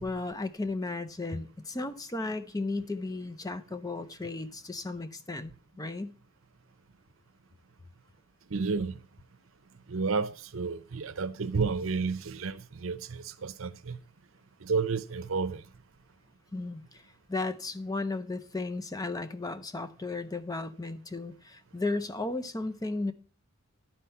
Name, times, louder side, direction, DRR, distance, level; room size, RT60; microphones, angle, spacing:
voice 1, 0.0-6.2 16.5-17.0 17.3-23.1, left 2 dB, 20° left, 0.6 m, -35 dB
voice 2, 8.5-9.0 9.9-14.0 14.6-15.6, right 4 dB, 80° right, 0.7 m, -31 dB
11.5 x 4.4 x 5.7 m
head